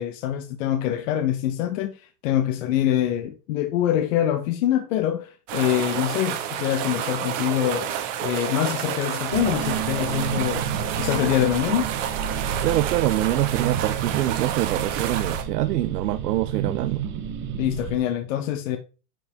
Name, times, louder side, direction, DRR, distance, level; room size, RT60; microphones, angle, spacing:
voice 1, 0.0-2.0 2.2-7.9 8.2-10.7 11.0-11.9 17.6-18.8, left 11 dB, 55° left, 1.1 m, -24 dB
sound 1, 5.5-15.4, right 10 dB, 50° right, 1.7 m, -29 dB
sound 2, 9.3-18.0, right 7 dB, 25° right, 0.9 m, -31 dB
voice 2, 12.6-17.0, right 15 dB, 80° right, 0.8 m, -24 dB
10.5 x 5.5 x 3.5 m
supercardioid pair, 155°, 47 cm